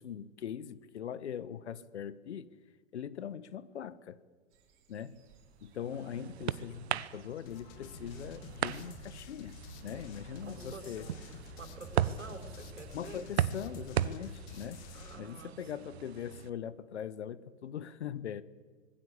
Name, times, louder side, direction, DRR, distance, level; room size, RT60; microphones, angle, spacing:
voice 1, 0.0-2.5 2.9-4.2 4.9-5.2 5.6-11.1 12.9-14.8 15.2-18.4, left 9 dB, 60° left, 1.3 m, -41 dB
sound 1, 4.5-13.5, right 6 dB, 30° right, 5.5 m, -67 dB
sound 2, 5.4-16.5, right 10 dB, 55° right, 1.1 m, -38 dB
voice 2, 5.9-6.5 10.4-11.3 11.6-13.3 14.9-15.9, right 4 dB, 70° right, 4.7 m, -49 dB
sound 3, 7.5-15.2, left 8 dB, 30° left, 1.9 m, -50 dB
25.5 x 21.0 x 8.5 m
figure-of-eight pair, 105°, 38 cm